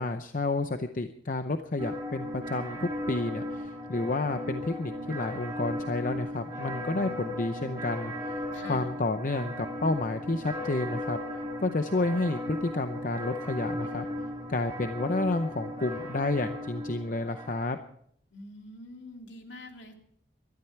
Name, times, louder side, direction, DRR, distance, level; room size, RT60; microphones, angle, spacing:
voice 1, 0.0-8.3 8.7-11.2 11.6-14.1 14.5-17.8, left 2 dB, 45° left, 8 dB, 0.7 m, -30 dB
sound 1, 1.8-17.7, left 1 dB, 15° right, 7.5 m, -36 dB
voice 2, 8.5-8.9 18.3-19.9, left 1 dB, 75° left, 3 dB, 2.8 m, -45 dB
20.5 x 13.5 x 4.6 m, 0.66 s
head